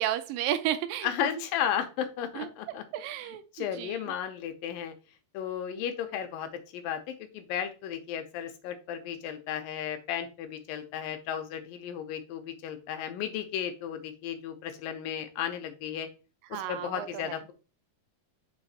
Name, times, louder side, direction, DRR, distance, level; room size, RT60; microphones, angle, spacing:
voice 1, 0.0-1.1 2.4-2.5 2.9-4.1 16.5-17.4, right 12 dB, 85° right, 10 dB, 2.1 m, -32 dB
voice 2, 1.0-2.8 3.5-4.9 5.3-16.1 16.5-17.4, left 9 dB, 90° left, 8 dB, 2.5 m, -34 dB
8.0 x 3.2 x 4.1 m, 0.34 s
omnidirectional pair, 3.9 m